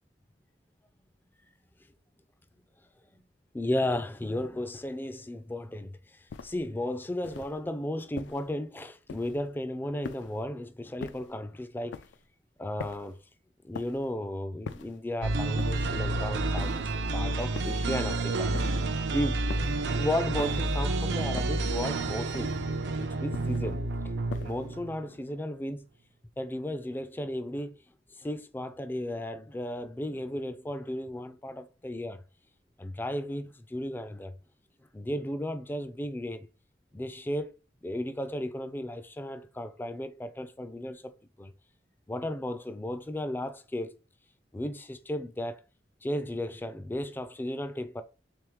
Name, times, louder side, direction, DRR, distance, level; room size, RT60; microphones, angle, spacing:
voice 1, 3.5-6.0 6.4-12.0 12.6-13.2 13.6-18.5 19.1-19.4 20.0-22.6 23.0-23.9 24.4-25.9 26.4-27.8 28.2-32.2 32.8-34.3 34.9-36.5 36.9-37.5 37.8-41.1 41.4-41.5 42.1-43.9 44.5-45.6 46.0-48.0, left 1 dB, 10° left, 0.3 m, -34 dB
sound 1, 6.3-6.7 7.2-7.6 8.2-8.5 9.1-9.5 10.0-10.5 11.0-11.4 11.9-12.3 12.8-13.2 13.7-14.1 14.6-15.0 15.6-16.0 16.6-17.0 17.6-17.9 18.5-18.9 19.5-19.8 20.4-20.8 21.4-21.8 22.3-22.7 23.3-23.7 24.3-24.7, left 5 dB, 90° left, 0.4 m, -43 dB
sound 2, 15.2-25.0, right 2 dB, 75° right, 0.5 m, -30 dB
3.6 x 3.5 x 3.0 m
head